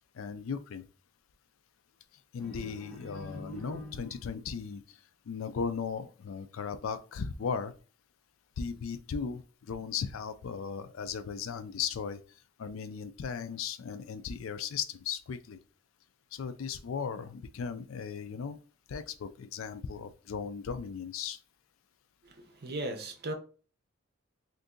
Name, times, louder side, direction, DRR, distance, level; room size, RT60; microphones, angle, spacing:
voice 1, 0.1-0.8 2.3-7.7 8.6-15.6 16.3-18.6 18.9-21.4, left 6 dB, 80° left, 0.4 m, -37 dB
sound 1, 2.4-4.4, equal, 5° left, 1.1 m, -45 dB
voice 2, 22.6-23.3, right 1 dB, 50° right, 0.7 m, -36 dB
2.7 x 2.6 x 3.7 m
head